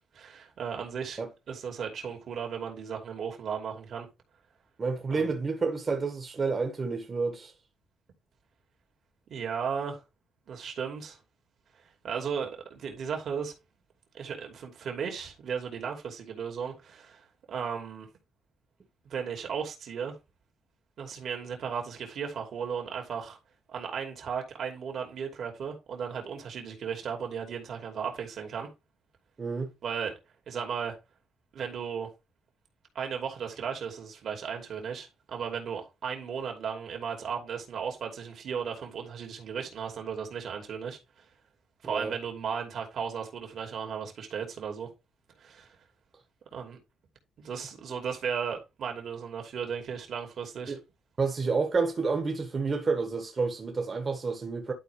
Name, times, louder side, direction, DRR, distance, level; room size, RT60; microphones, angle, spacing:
voice 1, 0.1-1.2 1.5-4.1 5.1-5.3 9.3-10.0 10.5-11.2 12.0-13.5 14.1-18.1 19.0-20.1 21.0-23.4 23.7-28.7 29.8-30.1 30.5-30.9 31.5-32.1 32.9-41.2 41.8-44.9 45.4-45.8 46.5-46.8 47.4-50.8, right 7 dB, 60° right, 2.7 m, -35 dB
voice 2, 4.8-7.5 29.4-29.7 41.8-42.1 50.7-50.8 51.2-54.7, right 4 dB, 35° right, 1.5 m, -29 dB
11.5 x 4.5 x 3.3 m
cardioid pair, 90°, 0 cm